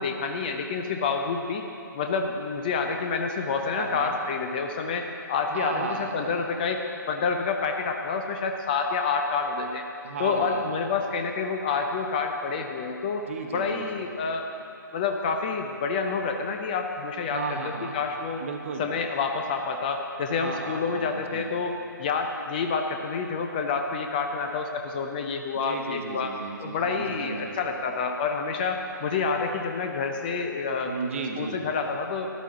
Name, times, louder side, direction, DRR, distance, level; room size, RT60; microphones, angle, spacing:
voice 1, 0.0-1.6 1.9-6.8 7.1-9.8 10.2-13.2 13.5-14.5 14.9-18.4 18.8-21.7 22.0-26.3 26.6-30.9 31.4-32.3, left 5 dB, 25° left, 4 dB, 0.6 m, -28 dB
voice 2, 3.7-4.1 5.5-6.4 10.0-10.7 13.2-14.1 17.3-17.9 18.4-18.9 20.3-21.5 25.5-27.6 30.8-31.6, right 4 dB, 40° right, 3 dB, 1.1 m, -35 dB
13.0 x 11.5 x 3.7 m, 2.9 s
figure-of-eight pair, 135°, 11 cm